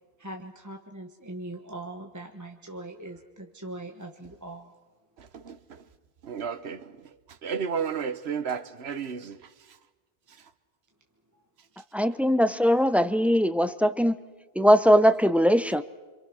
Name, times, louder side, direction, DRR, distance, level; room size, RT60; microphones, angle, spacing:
voice 1, 0.2-4.7 11.3-11.4, right 1 dB, 15° right, 3 dB, 1.3 m, -41 dB
voice 2, 5.2-5.8 6.2-6.9 7.4-9.4, right 6 dB, 80° right, 11 dB, 1.3 m, -32 dB
voice 3, 11.9-14.1 14.6-15.8, equal, ahead, 12 dB, 0.6 m, -20 dB
27.0 x 26.0 x 6.3 m, 1.3 s
omnidirectional pair, 1.1 m